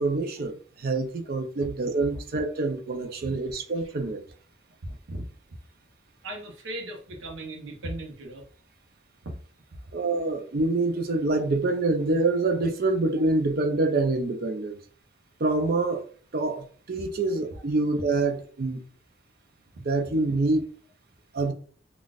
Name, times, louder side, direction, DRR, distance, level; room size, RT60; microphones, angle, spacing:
voice 1, 0.0-4.3 9.9-14.8 15.4-16.1 16.3-18.8 19.8-20.7 21.3-21.5, right 2 dB, 45° right, 0.4 m, -26 dB
voice 2, 6.2-8.4 9.2-9.4, right 1 dB, 70° right, 0.8 m, -37 dB
3.9 x 2.3 x 2.4 m
head